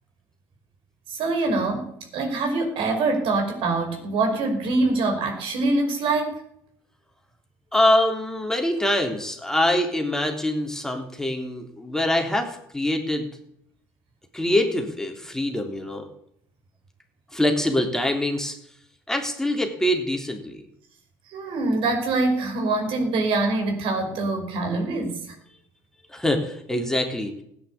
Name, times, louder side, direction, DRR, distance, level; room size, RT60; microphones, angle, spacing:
voice 1, 1.1-6.4 21.3-25.4, right 3 dB, 60° right, 4 dB, 5.4 m, -24 dB
voice 2, 7.7-13.3 14.3-16.1 17.3-18.5 19.1-20.6 26.1-27.3, left 1 dB, 5° left, 3 dB, 3.5 m, -24 dB
17.0 x 9.7 x 8.6 m, 0.71 s
hypercardioid pair, 70°, 10 cm